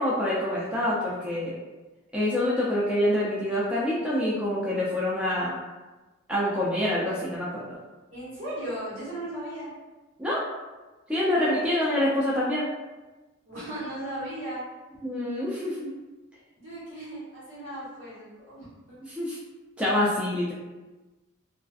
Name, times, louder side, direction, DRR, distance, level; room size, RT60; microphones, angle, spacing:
voice 1, 0.0-1.6 2.1-5.6 6.3-7.8 10.2-10.4 11.1-12.7 15.0-16.0 19.1-19.4 19.8-20.5, left 1 dB, 5° right, -7 dB, 0.3 m, -26 dB
voice 2, 8.1-9.7 11.3-12.1 13.4-14.6 16.6-19.0, right 1 dB, 70° right, -9 dB, 1.2 m, -37 dB
2.4 x 2.4 x 2.3 m, 1.2 s
head